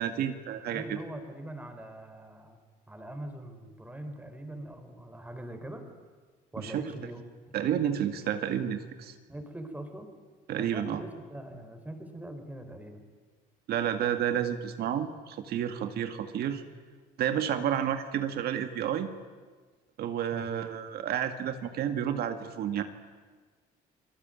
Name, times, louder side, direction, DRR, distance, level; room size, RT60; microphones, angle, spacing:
voice 1, 0.0-1.0 6.6-6.9 7.5-9.1 10.5-11.0 13.7-16.6 17.2-19.1 20.0-22.8, right 9 dB, 70° right, 8 dB, 2.1 m, -30 dB
voice 2, 0.5-2.6 2.9-5.8 6.5-7.3 9.3-10.1 10.6-13.0 20.3-20.5, right 1 dB, 10° right, 6 dB, 4.3 m, -42 dB
29.5 x 20.5 x 9.2 m, 1.4 s
cardioid pair, 110°, 17 cm